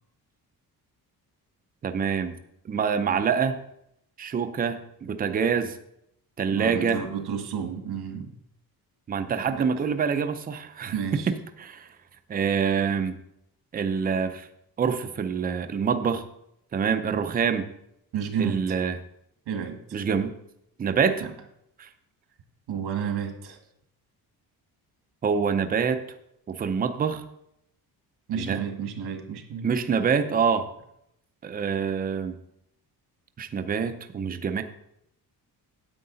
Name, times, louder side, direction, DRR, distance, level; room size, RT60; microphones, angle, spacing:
voice 1, 1.8-2.4 2.6-3.6 4.2-5.7 6.4-7.0 9.1-11.9 12.3-13.2 13.7-14.5 14.8-16.2 16.7-17.7 18.4-19.0 19.9-20.3 20.8-21.2 21.8-21.9 25.2-26.0 26.5-27.2 28.3-28.6 29.6-30.7 31.4-32.3 33.4-34.6, right 6 dB, 25° right, 8 dB, 0.5 m, -26 dB
voice 2, 6.5-8.3 9.5-9.7 10.9-11.3 18.1-18.6 19.5-19.8 21.2-21.3 22.7-23.6 28.3-29.7, right 7 dB, 85° right, 5 dB, 1.9 m, -31 dB
9.6 x 8.6 x 4.0 m, 0.77 s
cardioid pair, 180°, 38 cm